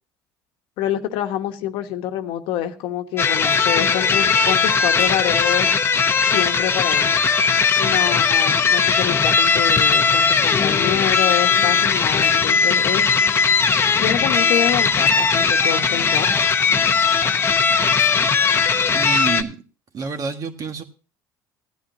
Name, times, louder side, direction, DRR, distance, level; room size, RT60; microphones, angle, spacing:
voice 1, 0.8-5.7 6.2-7.1 7.8-13.1 14.0-16.3, left 11 dB, 75° left, 1.2 m, -26 dB
sound 1, 3.2-19.4, left 5 dB, 30° left, 0.8 m, -18 dB
voice 2, 18.9-19.6 19.9-20.8, right 4 dB, 45° right, 1.6 m, -27 dB
16.0 x 9.8 x 2.7 m
cardioid pair, 105°, 8 cm